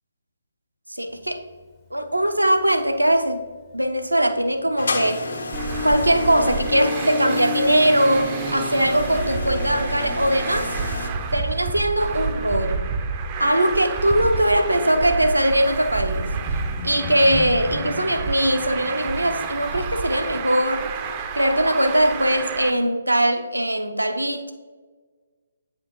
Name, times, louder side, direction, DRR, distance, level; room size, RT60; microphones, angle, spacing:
voice 1, 0.9-1.4 1.9-3.4 3.7-5.4 5.8-10.7 11.3-12.9 13.4-16.3 16.8-20.9 21.3-24.5, right 1 dB, 85° right, 7 dB, 0.6 m, -21 dB
Thunder, 1.1-20.4, left 5 dB, 20° left, 0.6 m, -43 dB
sound 1, 4.8-11.1, left 2 dB, 65° left, 0.9 m, -31 dB
Traffic noise roadway noise, 5.5-22.7, right 4 dB, 25° right, 0.4 m, -29 dB
8.6 x 5.1 x 3.0 m, 1.4 s
figure-of-eight pair, 135°, 0 cm